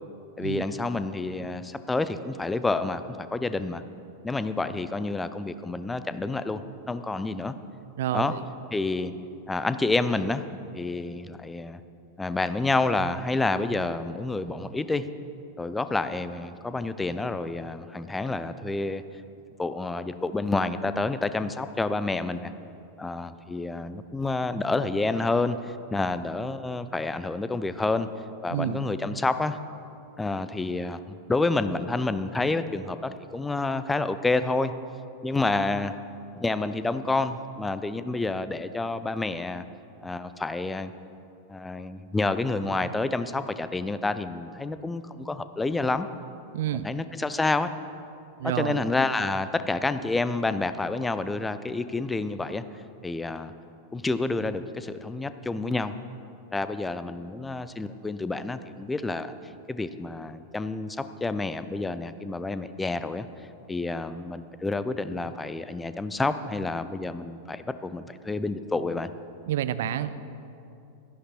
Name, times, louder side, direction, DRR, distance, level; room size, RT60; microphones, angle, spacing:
voice 1, 0.4-3.8 4.2-6.6 6.9-7.5 8.1-8.3 8.7-9.1 9.5-10.4 10.7-11.8 12.2-15.1 15.6-19.0 19.6-22.5 23.0-28.1 28.4-29.6 30.2-31.0 31.3-34.7 35.2-35.9 36.3-39.6 40.0-40.9 41.5-46.1 46.7-47.7 48.4-52.6 53.0-53.5 53.9-55.9 56.5-59.3 59.7-63.3 63.7-69.1, left 3 dB, 10° left, 12 dB, 0.5 m, -29 dB
voice 2, 8.0-8.4 28.5-28.8 46.5-46.9 48.4-48.8 69.5-70.2, right 11 dB, 55° right, 12 dB, 0.5 m, -29 dB
13.0 x 11.0 x 4.4 m, 2.6 s
figure-of-eight pair, 90°, 0 cm